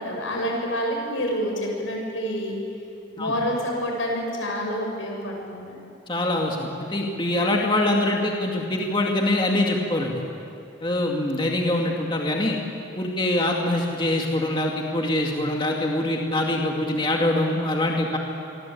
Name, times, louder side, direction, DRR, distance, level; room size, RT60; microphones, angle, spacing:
voice 1, 0.0-2.6 3.2-5.8, equal, 90° left, 1 dB, 7.4 m, -28 dB
voice 2, 6.1-10.1 10.8-12.6 13.0-18.2, left 1 dB, 25° left, 0 dB, 2.3 m, -24 dB
27.5 x 23.5 x 8.6 m, 2.7 s
head